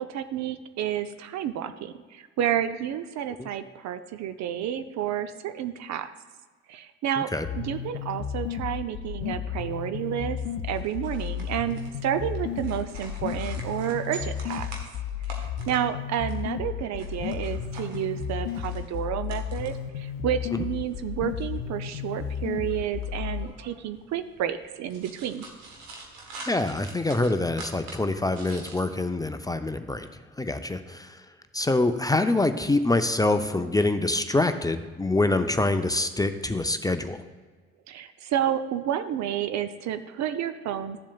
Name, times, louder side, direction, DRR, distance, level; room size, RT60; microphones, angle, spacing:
voice 1, 0.0-6.1 6.7-7.3 7.5-14.7 15.4-25.4 37.9-41.0, right 10 dB, 55° right, 10 dB, 0.6 m, -30 dB
sound 1, 7.4-23.4, left 8 dB, 70° left, 0.6 m, -33 dB
sound 2, 10.7-28.8, right 3 dB, 75° right, 1.3 m, -47 dB
voice 2, 26.5-30.1 30.4-31.2 31.5-37.2, left 2 dB, 10° left, 9 dB, 0.5 m, -25 dB
13.0 x 7.2 x 2.3 m, 1.4 s
hypercardioid pair, 50°, 33 cm